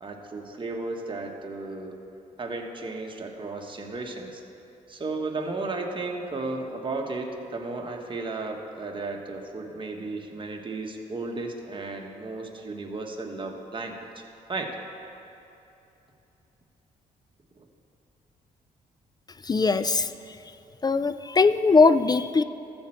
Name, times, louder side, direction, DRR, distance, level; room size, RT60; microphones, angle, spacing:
voice 1, 0.0-2.0 2.4-4.4 4.9-14.2 14.5-14.7 17.6-17.7, right 3 dB, 30° right, 2 dB, 1.3 m, -34 dB
voice 2, 19.4-20.4 20.8-22.4, left 4 dB, 25° left, 13 dB, 0.3 m, -21 dB
13.0 x 4.4 x 7.6 m, 2.9 s
supercardioid pair, 65°, 16 cm